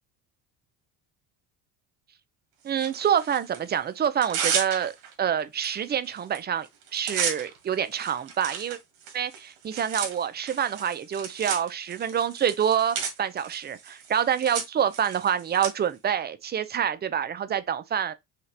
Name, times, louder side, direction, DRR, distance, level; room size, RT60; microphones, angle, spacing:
voice 1, 2.6-4.9 5.2-6.7 6.9-8.8 9.1-18.1, right 8 dB, 25° right, 0.5 m, -27 dB
Tearing, 2.8-3.6 4.0-5.1 5.6-5.8 6.0-6.4 6.6-15.7, right 7 dB, 80° right, 1.8 m, -34 dB
5.7 x 2.4 x 3.3 m
cardioid pair, 110°, 39 cm